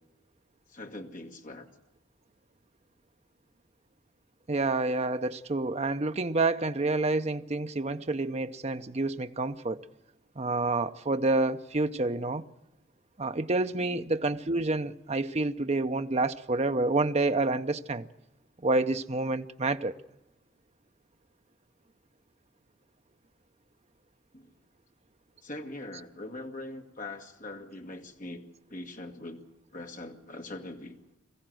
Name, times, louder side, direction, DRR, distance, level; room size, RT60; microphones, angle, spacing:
voice 1, 0.7-1.7 13.8-14.1 24.3-24.5 25.4-28.5 28.7-29.4 29.7-31.0, left 2 dB, 40° left, 1.9 m, -42 dB
voice 2, 4.5-9.8 10.4-12.4 13.2-18.1 18.6-19.9, right 2 dB, 30° right, 0.7 m, -28 dB
22.5 x 15.0 x 7.8 m
head